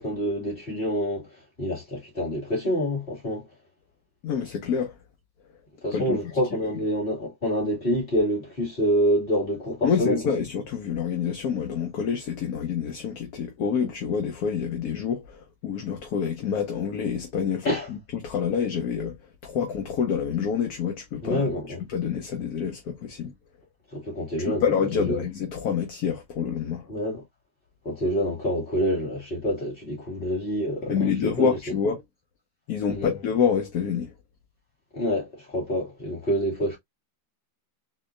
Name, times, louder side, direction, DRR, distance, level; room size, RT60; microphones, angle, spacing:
voice 1, 0.0-3.5 5.8-10.3 17.6-17.9 21.2-21.8 23.9-24.6 24.9-25.3 26.9-27.2 27.8-31.8 32.9-33.1 34.9-36.8, equal, 30° left, 2.6 m, -27 dB
voice 2, 4.2-4.9 5.9-6.2 6.6-6.7 9.8-19.2 19.4-21.4 21.9-23.3 24.4-26.9 30.9-32.0 32.7-34.1, left 7 dB, 60° left, 1.1 m, -27 dB
4.2 x 2.9 x 2.5 m
omnidirectional pair, 2.0 m